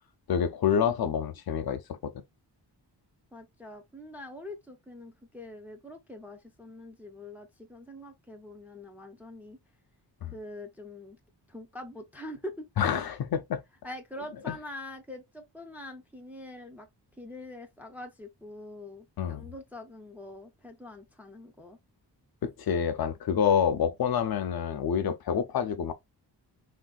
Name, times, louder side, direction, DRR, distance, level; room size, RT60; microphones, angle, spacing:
voice 1, 0.3-2.1 10.2-10.3 12.8-13.6 14.5-14.6 19.2-19.5 22.4-25.9, left 8 dB, 60° left, 0.5 m, -27 dB
voice 2, 3.3-9.6 10.3-11.2 11.5-12.7 13.8-16.9 17.2-21.8, left 1 dB, 5° right, 0.4 m, -44 dB
3.4 x 2.5 x 2.2 m
wide cardioid pair, 155°, 43 cm